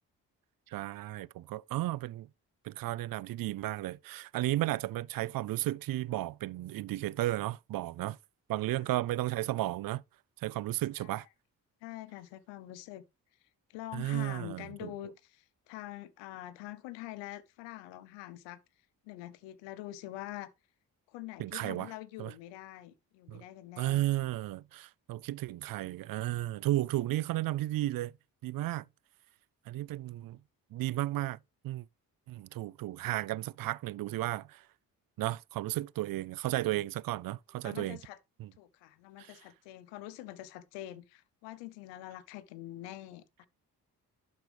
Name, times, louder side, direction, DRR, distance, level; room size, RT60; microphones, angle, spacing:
voice 1, 0.7-2.3 2.6-8.2 8.5-10.0 10.4-11.3 13.9-14.9 21.4-21.9 22.2-22.3 23.3-23.4 23.8-28.1 28.4-28.9 29.7-30.4 30.7-31.8 32.3-34.6 35.2-38.0 38.4-38.5 39.2-39.3, right 15 dB, 55° right, 0.5 m, -34 dB
voice 2, 8.7-9.0 11.0-11.1 11.8-13.0 13.7-18.6 19.0-20.5 21.1-24.0 37.6-38.2 38.6-43.5, left 15 dB, 85° left, 0.7 m, -45 dB
11.5 x 4.2 x 3.3 m
hypercardioid pair, 40°, 42 cm